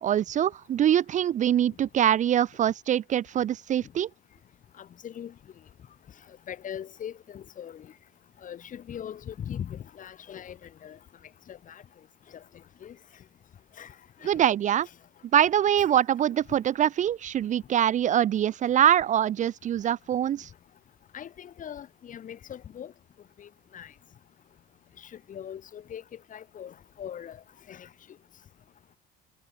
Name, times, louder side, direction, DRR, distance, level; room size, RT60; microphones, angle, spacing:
voice 1, 0.0-4.1 14.2-14.9 15.3-20.5, right 10 dB, 45° right, 0.6 m, -24 dB
voice 2, 4.8-5.3 6.5-7.9 8.4-11.0 11.5-11.8 12.8-13.0 13.8-13.9 14.2-14.3 15.7-15.9 21.1-22.9 23.4-23.9 25.3-26.0 26.3-27.4 27.7-27.9, left 9 dB, 50° left, 4.7 m, -40 dB
cardioid pair, 110°, 17 cm